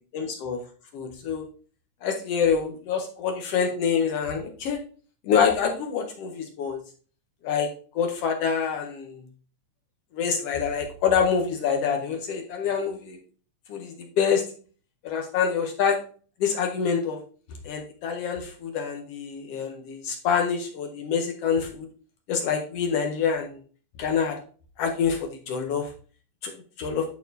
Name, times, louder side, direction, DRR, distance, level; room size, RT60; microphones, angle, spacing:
voice 1, 0.1-0.6 0.9-1.5 2.0-4.8 5.2-6.8 7.4-7.7 7.9-9.2 10.1-13.2 13.7-14.4 15.0-16.0 16.4-17.2 17.6-21.9 22.3-23.6 24.0-24.4 24.8-25.9 26.4-26.5 26.8-27.0, left 6 dB, 70° left, 2 dB, 1.6 m, -26 dB
10.5 x 4.1 x 2.6 m, 0.41 s
omnidirectional pair, 3.4 m